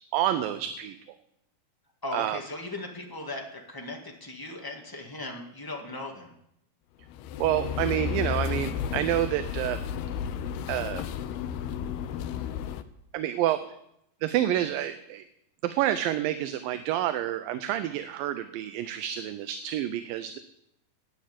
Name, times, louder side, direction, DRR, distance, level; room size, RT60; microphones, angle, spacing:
voice 1, 0.1-1.0 2.1-2.4 7.4-9.8 10.7-11.1 13.1-13.8 14.2-15.2 15.6-20.4, right 12 dB, 80° right, 11 dB, 2.3 m, -28 dB
voice 2, 2.0-6.3, left 2 dB, 15° left, 1 dB, 0.6 m, -38 dB
sound 1, 7.0-12.8, left 8 dB, 90° left, 2.7 m, -33 dB
13.5 x 9.8 x 8.9 m, 0.79 s
omnidirectional pair, 4.3 m